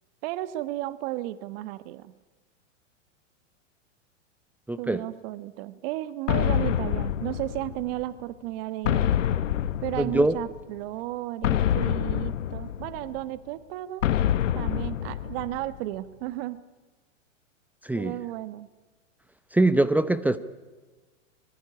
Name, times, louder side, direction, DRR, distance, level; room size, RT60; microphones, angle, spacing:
voice 1, 0.2-2.1 4.8-9.1 9.8-14.1 14.5-16.6 17.9-18.7, right 16 dB, 50° right, 14 dB, 1.4 m, -34 dB
voice 2, 4.7-5.0 10.0-10.4 17.8-18.1 19.5-20.4, right 2 dB, 5° right, 14 dB, 0.8 m, -22 dB
sound 1, 6.3-8.0 8.8-10.6 11.4-13.2 14.0-15.8, left 10 dB, 80° left, 1.3 m, -26 dB
25.5 x 22.0 x 9.9 m, 1.3 s
hypercardioid pair, 125°, 37 cm